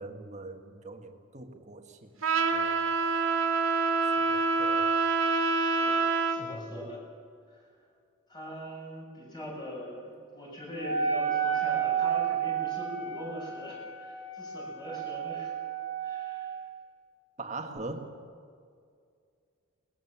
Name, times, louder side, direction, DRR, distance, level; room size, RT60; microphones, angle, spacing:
voice 1, 0.0-2.2 2.5-3.0 4.3-4.9 6.4-6.9 17.4-18.2, right 2 dB, 35° right, 4 dB, 1.8 m, -42 dB
Trumpet, 2.2-6.4, right 4 dB, 70° right, 2.3 m, -26 dB
voice 2, 6.3-7.0 7.5-7.6 8.3-15.5 16.0-16.6, equal, 20° left, -2 dB, 6.4 m, -42 dB
Wind instrument woodwind instrument, 10.8-16.6, right 7 dB, 45° left, 6.4 m, -31 dB
22.0 x 20.0 x 7.4 m, 2.3 s
head